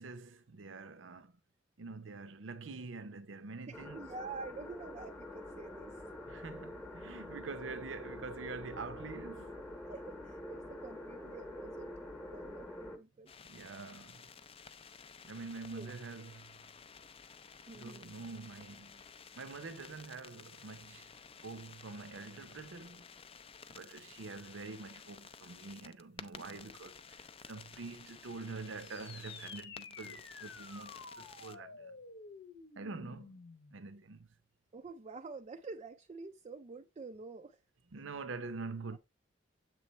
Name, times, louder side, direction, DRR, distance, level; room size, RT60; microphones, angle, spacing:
voice 1, 0.0-1.4 1.8-4.0 6.3-9.6 13.4-14.3 15.2-16.5 17.7-19.0 19.4-21.1 21.4-23.1 23.7-31.9 32.8-33.4 33.7-34.3 37.9-39.0, right 4 dB, 75° right, 0.7 m, -46 dB
sound 1, 3.7-13.0, left 1 dB, 10° left, 0.9 m, -46 dB
voice 2, 3.7-6.0 9.9-11.9 12.3-13.3 15.7-15.9 17.7-18.1 34.7-37.6 37.9-38.0 38.9-39.0, right 3 dB, 35° right, 0.4 m, -48 dB
sound 2, 13.3-31.5, left 6 dB, 30° left, 0.4 m, -54 dB
sound 3, 28.8-33.8, left 4 dB, 60° left, 0.8 m, -51 dB
7.5 x 3.2 x 4.2 m
head